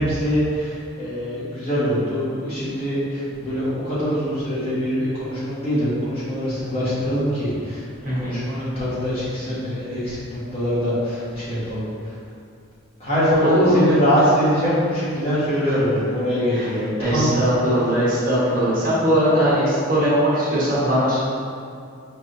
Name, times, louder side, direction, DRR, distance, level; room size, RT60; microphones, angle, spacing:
voice 1, 0.0-7.8 8.2-12.1 13.0-17.4, equal, 25° left, -12 dB, 1.4 m, -23 dB
voice 2, 8.0-8.4 13.4-13.8 15.6-15.7 16.5-21.2, equal, 40° right, -9 dB, 1.2 m, -20 dB
5.1 x 3.3 x 2.7 m, 2.3 s
head